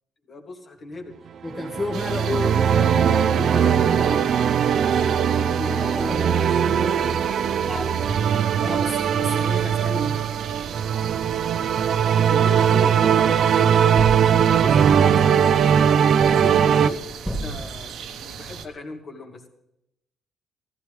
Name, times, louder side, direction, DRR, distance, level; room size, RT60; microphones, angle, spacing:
voice 1, 0.3-1.2 5.5-8.8 12.2-14.1 14.6-17.1 17.4-17.9 18.2-19.5, left 2 dB, 35° left, 3 dB, 2.4 m, -37 dB
voice 2, 1.4-4.4 8.6-10.2, left 2 dB, 20° left, -1 dB, 1.5 m, -31 dB
sound 1, 1.5-16.9, right 8 dB, 55° right, 0.6 m, -20 dB
sound 2, 1.9-18.7, right 7 dB, 75° right, 1.1 m, -38 dB
sound 3, 5.7-17.8, equal, 5° left, 2.6 m, -38 dB
15.0 x 15.0 x 3.3 m, 0.82 s
cardioid pair, 125°, 0 cm